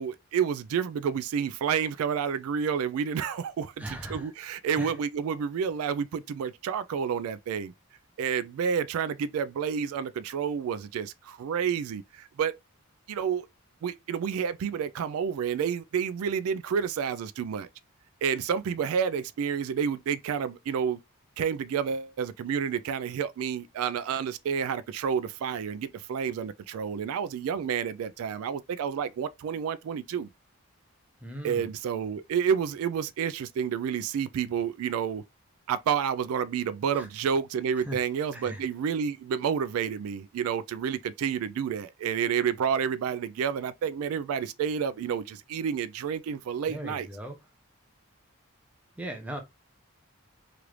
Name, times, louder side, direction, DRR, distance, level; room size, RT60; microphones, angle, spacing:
voice 1, 0.0-7.7 8.2-12.5 13.1-13.5 13.8-17.7 18.2-21.0 21.4-30.3 31.4-35.2 35.7-47.1, right 7 dB, 80° right, 0.3 m, -29 dB
voice 2, 3.8-4.3 4.8-4.9 31.2-31.7 36.9-37.1 37.9-38.0 38.3-38.6 46.7-47.4 49.0-49.4, right 1 dB, 5° right, 0.6 m, -38 dB
3.0 x 2.5 x 3.1 m
head